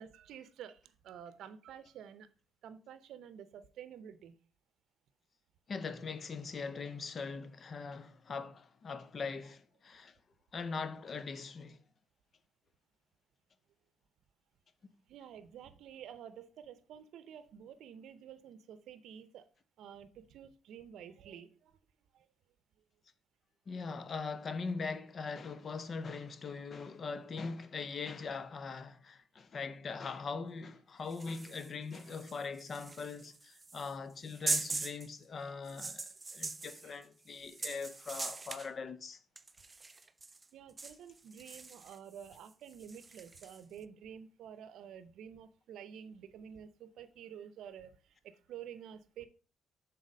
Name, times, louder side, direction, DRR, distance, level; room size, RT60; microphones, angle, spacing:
voice 1, 0.0-2.3 2.6-4.3 15.1-19.5 19.8-21.8 22.1-22.3 40.5-49.3, right 8 dB, 80° right, 0.6 m, -50 dB
voice 2, 5.7-10.2 10.5-11.8 14.8-14.9 23.7-39.2, left 4 dB, 45° left, 0.7 m, -41 dB
sound 1, 31.1-35.1 35.6-38.7 39.3-40.5 40.8-43.6, right 3 dB, 25° right, 0.4 m, -42 dB
6.5 x 4.1 x 5.1 m
cardioid pair, 90°, 0 cm